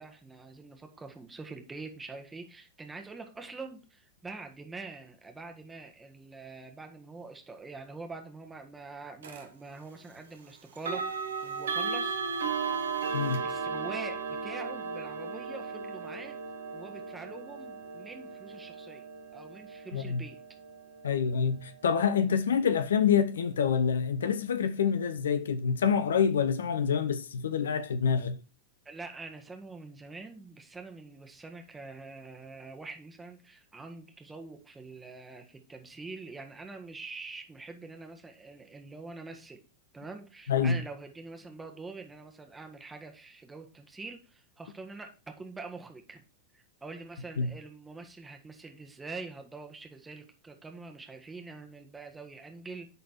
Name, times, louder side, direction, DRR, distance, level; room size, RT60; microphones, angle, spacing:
voice 1, 0.0-11.1 11.4-12.2 13.4-16.4 16.7-19.0 19.3-20.4 28.8-39.6 39.9-46.2 46.5-52.9, right 3 dB, 10° right, 1.5 m, -45 dB
sound 1, 9.2-9.5 10.8-21.6, right 5 dB, 65° right, 1.0 m, -36 dB
voice 2, 21.0-28.4 40.5-40.8 47.4-47.5, left 7 dB, 65° left, 0.6 m, -27 dB
10.5 x 4.1 x 4.3 m
figure-of-eight pair, 90°, 0 cm